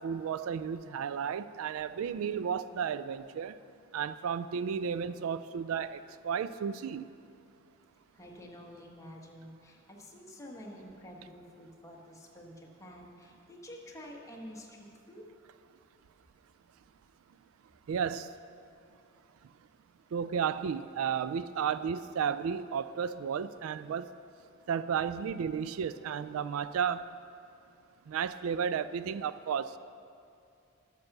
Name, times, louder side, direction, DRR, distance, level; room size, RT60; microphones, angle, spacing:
voice 1, 0.0-3.6 3.9-7.1 17.9-18.3 20.1-24.1 24.7-27.0 28.1-29.8, right 7 dB, 80° right, 15 dB, 0.3 m, -33 dB
voice 2, 8.1-15.2, equal, 15° left, -2 dB, 1.3 m, -49 dB
12.0 x 6.7 x 5.9 m, 2.6 s
head